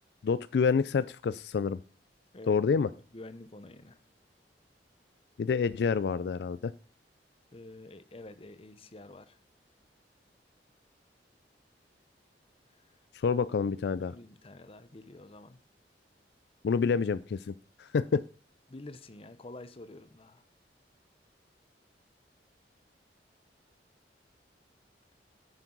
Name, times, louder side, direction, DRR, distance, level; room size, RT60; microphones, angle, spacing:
voice 1, 0.2-1.8 2.5-2.9 5.4-6.7 13.1-14.1 16.6-17.5 17.8-18.2, left 5 dB, 65° left, 0.3 m, -28 dB
voice 2, 3.1-4.0 7.5-9.4 12.7-12.9 14.1-15.6 18.7-20.4, left 2 dB, 35° left, 0.8 m, -48 dB
9.7 x 9.2 x 3.9 m
head